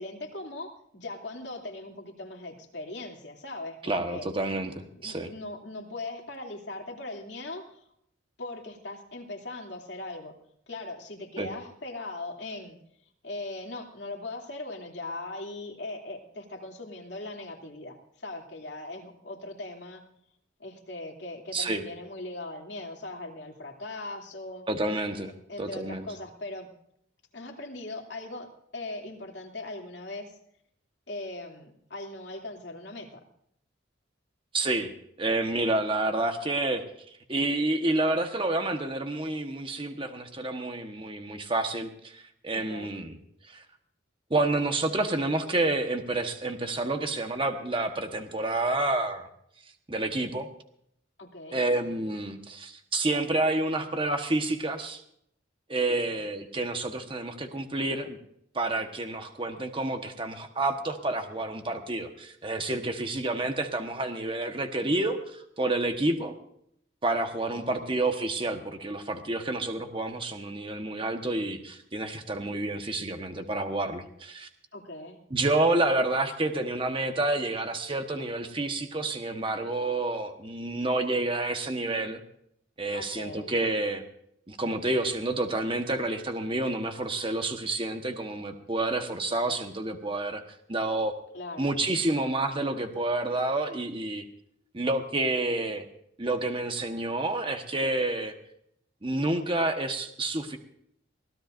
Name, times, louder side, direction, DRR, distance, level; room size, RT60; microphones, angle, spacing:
voice 1, 0.0-4.3 5.0-7.6 8.4-10.3 10.7-12.8 13.2-20.0 20.6-24.7 25.5-26.7 27.3-30.4 31.1-33.2 42.5-42.9 51.2-51.6 56.1-56.3 67.7-68.0 74.7-75.2 82.9-83.5 91.3-91.7 99.4-99.5, left 2 dB, 60° left, 1 dB, 2.8 m, -40 dB
voice 2, 3.8-5.3 11.4-11.5 21.5-21.8 24.7-25.3 25.6-26.1 34.5-34.9 35.2-43.2 43.5-43.6 44.3-49.3 49.9-50.5 51.5-55.0 55.7-58.2 58.5-66.3 67.0-74.5 75.3-82.2 82.8-84.0 84.5-90.4 90.7-91.1 91.6-94.2 94.7-95.8 96.2-98.3 99.0-100.6, right 2 dB, 25° right, 5 dB, 1.3 m, -29 dB
23.5 x 17.0 x 2.6 m, 0.71 s
head